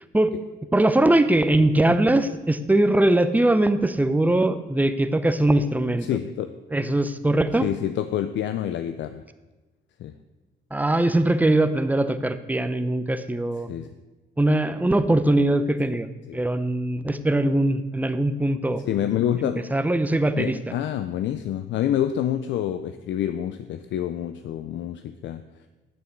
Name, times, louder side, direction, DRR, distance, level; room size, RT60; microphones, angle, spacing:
voice 1, 0.7-6.1 6.7-7.7 10.7-13.7 14.4-16.1 16.3-18.8 19.7-20.6, right 1 dB, 10° right, 11 dB, 0.5 m, -21 dB
voice 2, 6.0-6.5 7.6-9.2 10.0-10.2 13.7-13.9 16.3-16.4 18.8-19.8 20.4-25.5, left 10 dB, 70° left, 10 dB, 0.5 m, -27 dB
9.0 x 6.7 x 4.6 m, 1.2 s
cardioid pair, 90°, 20 cm